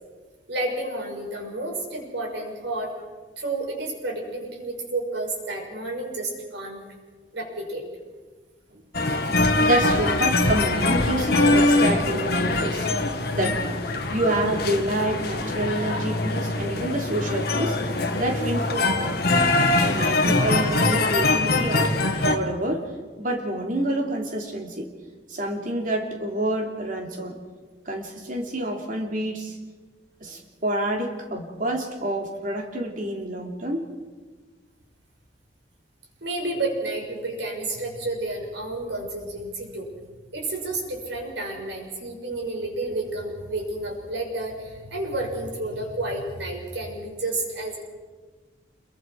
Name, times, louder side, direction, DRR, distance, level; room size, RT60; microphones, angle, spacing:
voice 1, 0.5-3.0 3.4-6.8 7.3-7.9 36.2-39.9 40.3-47.8, right 2 dB, 90° right, 1 dB, 6.0 m, -30 dB
voice 2, 8.7-9.1 9.6-12.9 13.3-13.8 14.1-17.8 18.1-19.4 19.9-21.9 22.2-22.8 23.2-24.9 25.3-27.4 27.8-29.6 30.2-33.9, right 1 dB, 50° right, 1 dB, 3.1 m, -28 dB
sound 1, 8.9-22.4, left 2 dB, 60° left, 1.8 m, -23 dB
27.5 x 23.0 x 4.7 m, 1.4 s
head